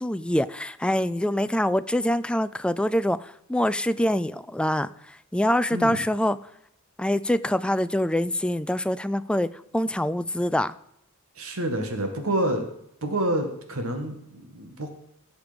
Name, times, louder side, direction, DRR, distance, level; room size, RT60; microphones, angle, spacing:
voice 1, 0.0-4.9 5.3-6.4 7.0-10.7, left 1 dB, 5° left, 13 dB, 0.3 m, -25 dB
voice 2, 11.4-12.7 13.0-14.9, right 1 dB, 70° right, 5 dB, 1.9 m, -28 dB
17.5 x 6.7 x 5.2 m, 0.75 s
head